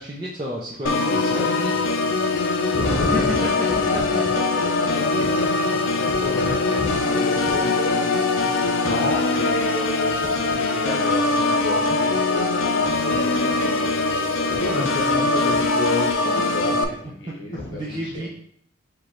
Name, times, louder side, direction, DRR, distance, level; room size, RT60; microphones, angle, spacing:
voice 1, 0.0-1.7 3.1-3.5 3.9-5.1 5.7-5.8 8.4-8.7 11.3-11.6 11.9-12.0 13.5-13.7 14.2-14.4 14.8-15.3 17.3-17.4 17.7-18.3, equal, 25° right, -5 dB, 0.5 m, -33 dB
Organ, 0.8-16.8, left 3 dB, 90° left, 0.5 m, -22 dB
voice 2, 2.6-4.1 4.9-13.9 14.2-18.3, left 2 dB, 60° left, 0 dB, 1.0 m, -31 dB
Bowed string instrument, 5.2-9.0 9.3-9.4, left 4 dB, 35° left, 0.5 m, -42 dB
4.9 x 2.3 x 4.3 m, 0.67 s
head